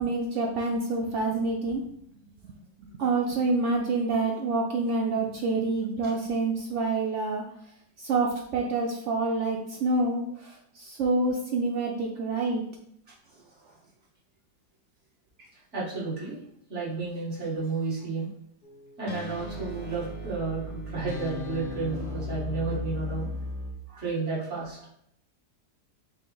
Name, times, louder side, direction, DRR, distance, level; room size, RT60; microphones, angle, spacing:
voice 1, 0.0-1.8 2.4-2.5 2.9-7.4 8.0-12.6, right 3 dB, 85° right, 0 dB, 0.6 m, -27 dB
voice 2, 13.3-13.7 15.7-16.4 16.7-18.3 19.0-23.3 23.9-24.9, right 3 dB, 45° right, -6 dB, 1.6 m, -32 dB
sound 1, 18.6-23.7, left 2 dB, 80° left, 1.3 m, -36 dB
5.5 x 2.0 x 3.7 m, 0.72 s
omnidirectional pair, 1.8 m